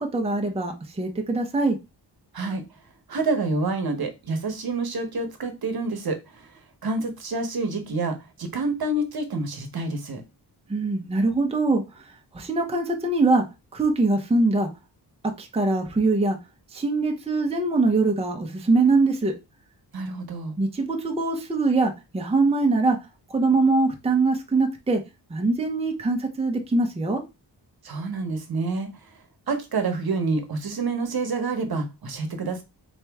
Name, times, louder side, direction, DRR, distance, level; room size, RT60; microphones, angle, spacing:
voice 1, 0.0-1.8 10.7-12.0 12.3-13.4 13.7-14.7 15.4-16.4 16.7-19.3 20.6-23.0 23.3-25.0 25.3-27.2, right 3 dB, 15° right, 3 dB, 0.7 m, -23 dB
voice 2, 3.1-6.5 6.8-10.2 19.9-20.5 27.8-28.9 29.5-32.6, right 3 dB, 55° right, 6 dB, 1.0 m, -28 dB
4.3 x 3.0 x 3.4 m, 0.25 s
wide cardioid pair, 140°, 43 cm